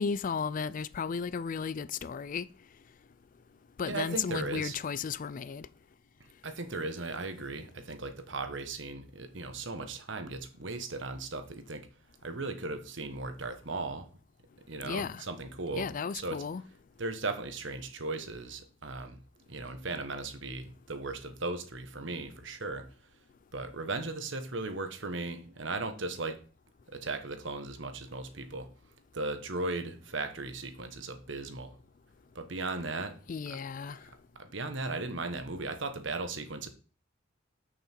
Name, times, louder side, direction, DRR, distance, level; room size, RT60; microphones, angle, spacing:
voice 1, 0.0-2.5 3.8-5.7 14.8-15.2 15.7-16.6 33.3-34.0, left 6 dB, 40° left, 0.4 m, -34 dB
voice 2, 3.8-4.8 6.4-11.9 12.2-14.1 14.7-15.9 16.1-16.4 17.0-19.2 19.5-22.8 23.5-26.4 26.9-28.7 29.1-31.8 32.3-33.1 33.5-33.6 33.9-34.1 34.3-36.7, right 3 dB, 65° right, 1.3 m, -37 dB
7.9 x 6.6 x 4.5 m
head